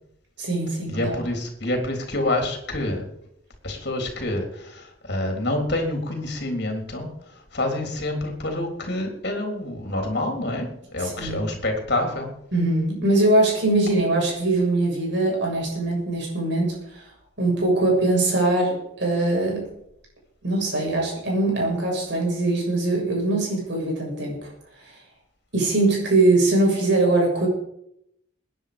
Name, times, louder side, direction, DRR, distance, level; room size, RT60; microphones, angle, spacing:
voice 1, 0.4-1.2 11.0-11.4 12.5-17.1 17.4-19.6 20.4-24.5 24.9-25.0 25.5-27.5, right 2 dB, 55° right, -1 dB, 7.1 m, -22 dB
voice 2, 0.9-3.1 3.6-12.3, left 1 dB, 50° left, 3 dB, 3.7 m, -27 dB
20.5 x 10.0 x 5.2 m, 0.73 s
head